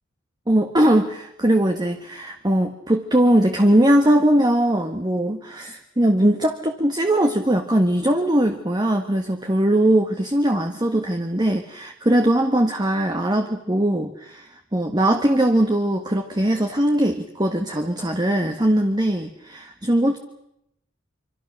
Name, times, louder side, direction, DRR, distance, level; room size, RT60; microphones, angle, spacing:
voice 1, 0.5-20.2, right 1 dB, 20° right, 5 dB, 1.6 m, -20 dB
26.0 x 25.5 x 6.5 m, 0.82 s
head